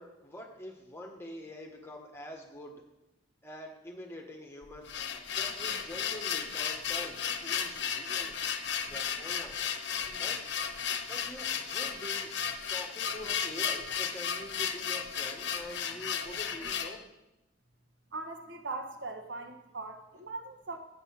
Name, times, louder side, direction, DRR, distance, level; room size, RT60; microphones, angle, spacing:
voice 1, 0.0-2.8 3.4-4.9 5.3-8.4 8.9-9.6 10.2-10.4 11.1-12.3 12.7-17.1, left 1 dB, 15° left, 1 dB, 1.4 m, -45 dB
sound 1, 4.6-17.0, left 7 dB, 65° left, 0.8 m, -34 dB
voice 2, 18.1-20.8, right 3 dB, 80° right, 5 dB, 1.3 m, -40 dB
8.1 x 7.7 x 5.8 m, 0.96 s
head